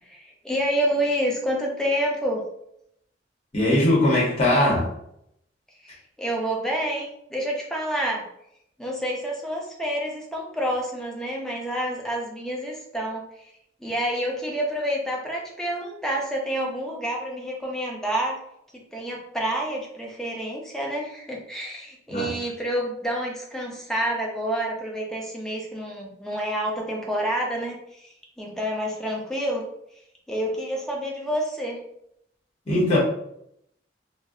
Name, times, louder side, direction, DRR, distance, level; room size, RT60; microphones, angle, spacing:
voice 1, 0.0-2.4 5.9-8.2 8.8-13.5 13.8-18.4 18.7-29.6 30.3-31.8, right 1 dB, 5° left, -2 dB, 0.6 m, -28 dB
voice 2, 3.5-4.9 22.1-22.3 32.7-33.0, left 1 dB, 35° left, -4 dB, 0.9 m, -20 dB
2.5 x 2.1 x 3.7 m, 0.74 s
head